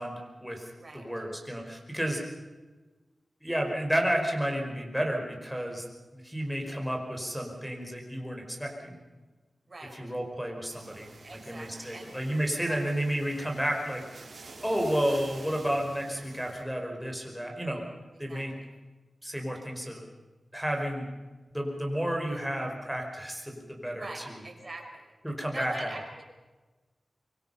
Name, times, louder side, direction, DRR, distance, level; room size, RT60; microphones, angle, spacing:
voice 1, 0.0-0.7 0.9-2.2 3.4-5.9 6.1-9.0 9.9-11.1 11.5-14.0 14.6-17.8 18.2-18.6 19.2-20.0 20.5-21.1 21.5-24.4 25.2-25.9, equal, ahead, 1 dB, 5.2 m, -31 dB
voice 2, 0.7-1.1 9.7-10.0 11.2-12.1 12.7-12.8 18.1-18.5 24.0-25.0 25.5-26.2, right 2 dB, 40° right, 1 dB, 5.7 m, -43 dB
sound 1, 10.7-16.6, right 3 dB, 65° right, 5.6 m, -48 dB
25.0 x 23.5 x 5.7 m, 1.2 s
wide cardioid pair, 90°, 0 cm